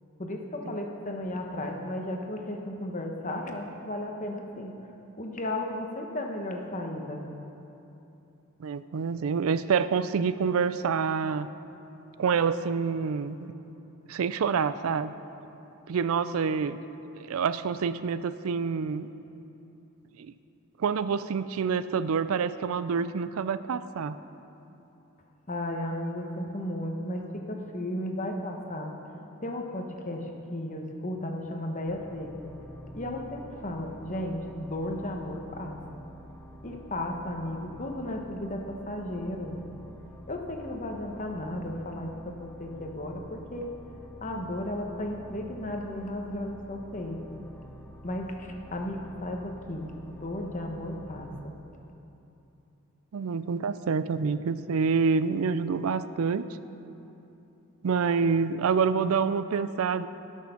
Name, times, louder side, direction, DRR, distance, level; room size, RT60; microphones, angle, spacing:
voice 1, 0.2-4.7 5.2-7.3 25.5-28.9 29.4-32.5 32.9-36.0 36.6-39.6 40.3-43.7 44.2-47.4 48.0-51.5, left 1 dB, 35° left, 2 dB, 1.1 m, -34 dB
voice 2, 8.6-11.5 12.2-13.5 14.1-15.1 15.9-16.8 17.2-19.1 20.2-20.3 20.8-24.2 53.1-56.4 57.8-60.1, right 5 dB, 75° right, 14 dB, 0.4 m, -27 dB
sound 1, 31.9-51.4, equal, 10° left, 0.6 m, -48 dB
18.0 x 6.4 x 5.8 m, 3.0 s
head